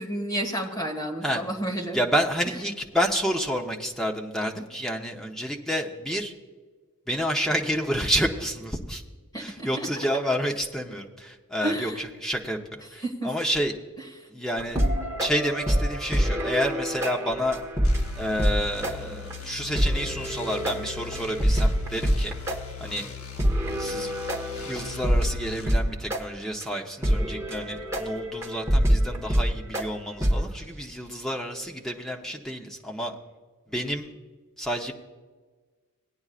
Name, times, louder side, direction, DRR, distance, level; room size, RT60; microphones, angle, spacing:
voice 1, 0.0-2.0 9.3-9.9 11.6-12.0 13.0-13.3, right 1 dB, 20° left, 1 dB, 1.7 m, -30 dB
voice 2, 1.9-6.3 7.1-9.0 9.4-13.7 14.3-14.8 15.2-17.6 18.2-22.3 22.8-23.1 23.8-24.1 24.6-33.2 33.7-34.1 34.6-34.9, equal, ahead, 0 dB, 0.9 m, -29 dB
sound 1, 14.6-18.6 18.8-18.9 19.3-19.4 19.8-22.6 23.0-23.1 23.4-25.9 26.1-26.2 26.6-26.7 27.0-29.8 30.2-30.4, equal, 15° right, 1.3 m, -25 dB
sound 2, 17.8-25.7, left 6 dB, 70° left, 0.9 m, -40 dB
18.0 x 9.5 x 2.5 m, 1.4 s
head